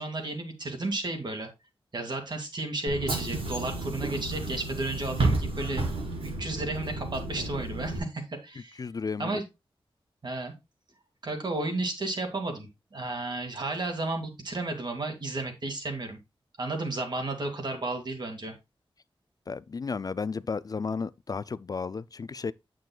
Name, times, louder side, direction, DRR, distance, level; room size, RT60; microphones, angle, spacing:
voice 1, 0.0-1.5 1.9-5.8 6.2-8.8 9.2-9.4 10.2-10.5 11.2-16.2 16.6-18.5, right 2 dB, 50° right, 2.7 m, -33 dB
Bus / Engine, 2.9-8.0, right 2 dB, 75° right, 3.0 m, -31 dB
voice 2, 8.8-9.3 19.5-22.5, left 5 dB, 40° left, 0.4 m, -33 dB
9.1 x 7.7 x 2.3 m
wide cardioid pair, 130°, 10 cm